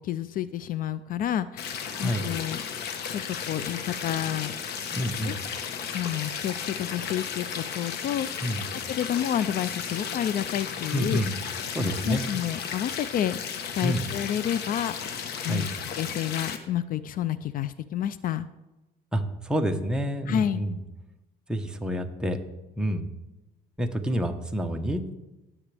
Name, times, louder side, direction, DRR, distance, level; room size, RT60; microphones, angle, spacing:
voice 1, 0.0-1.7 2.0-2.6 3.1-4.5 5.2-5.4 5.9-8.3 8.9-11.2 11.8-13.4 13.7-15.7 16.0-18.5 20.3-20.6, left 10 dB, 55° left, 15 dB, 0.4 m, -30 dB
sound 1, 1.6-16.6, left 7 dB, 75° left, 1.2 m, -34 dB
voice 2, 1.9-2.2 4.9-5.4 8.4-8.6 10.9-11.4 11.7-12.2 13.8-14.0 15.4-15.7 19.1-20.8 21.5-22.4 22.8-23.1 23.8-25.1, equal, 5° right, 3 dB, 1.1 m, -28 dB
17.5 x 7.2 x 3.4 m, 1.0 s
cardioid pair, 110°, 17 cm